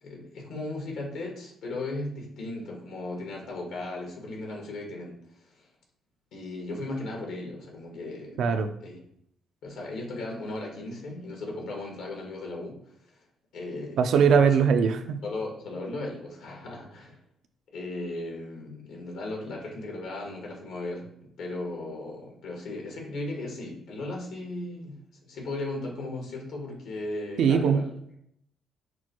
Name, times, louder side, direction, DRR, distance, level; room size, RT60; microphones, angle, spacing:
voice 1, 0.0-5.2 5.4-5.6 6.3-9.0 9.6-12.8 13.5-14.1 15.2-17.2 17.7-21.1 21.4-27.9, left 2 dB, 80° left, 0 dB, 1.4 m, -36 dB
voice 2, 8.4-8.7 14.0-15.2 27.4-27.8, right 6 dB, 75° right, 8 dB, 0.4 m, -21 dB
6.0 x 2.3 x 2.9 m, 0.69 s
cardioid pair, 90°, 0 cm